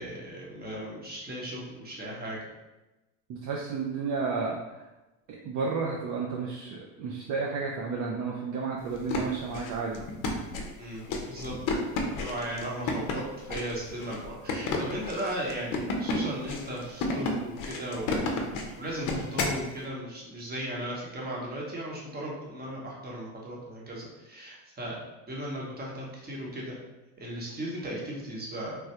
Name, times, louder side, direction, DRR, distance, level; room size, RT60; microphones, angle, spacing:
voice 1, 0.0-2.4 10.8-11.5 12.2-18.3 18.8-26.8 27.2-28.8, right 1 dB, 20° right, -3 dB, 0.9 m, -36 dB
voice 2, 3.3-4.8 5.4-10.0, right 4 dB, 45° right, -2 dB, 0.5 m, -32 dB
sound 1, 8.9-19.6, left 3 dB, 45° left, 0.6 m, -32 dB
3.3 x 2.2 x 2.8 m, 1.1 s
supercardioid pair, 105°, 44 cm